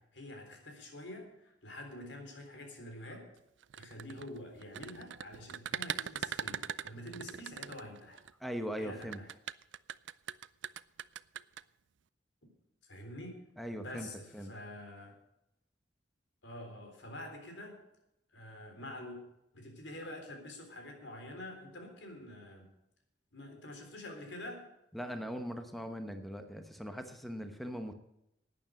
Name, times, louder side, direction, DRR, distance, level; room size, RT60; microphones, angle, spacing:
voice 1, 0.0-3.3 3.7-8.2 8.8-9.3 12.8-13.4 13.7-15.2 16.4-17.8 18.3-19.2 19.5-22.7 23.3-24.7, left 1 dB, 80° left, 4 dB, 3.7 m, -47 dB
sound 1, 3.6-8.3 9.0-11.6, right 9 dB, 85° right, 0.5 m, -40 dB
voice 2, 8.4-9.2 13.6-14.1 14.3-14.5 24.9-27.9, equal, ahead, 7 dB, 0.9 m, -40 dB
11.5 x 9.3 x 7.7 m, 0.85 s
head